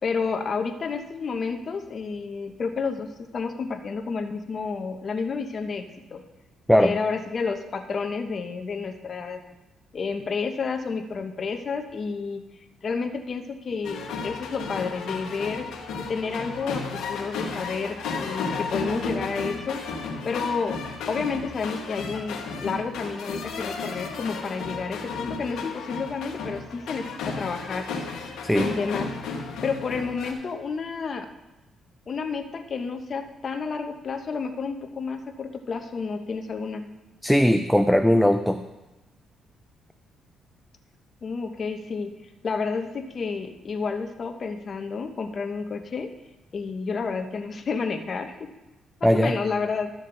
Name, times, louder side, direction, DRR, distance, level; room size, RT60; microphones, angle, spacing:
voice 1, 0.0-6.2 6.8-9.4 9.9-12.4 12.8-19.8 20.2-20.8 21.1-27.9 28.5-29.1 29.6-31.3 32.1-36.9 41.2-42.1 42.4-46.1 46.5-48.5 49.0-49.9, left 5 dB, 45° left, 5 dB, 0.9 m, -30 dB
sound 1, 13.8-30.3, left 4 dB, 85° left, 1.4 m, -33 dB
voice 2, 37.2-38.6 49.0-49.3, equal, ahead, 7 dB, 0.5 m, -19 dB
12.5 x 6.4 x 3.8 m, 1.0 s
cardioid pair, 90°, 0 cm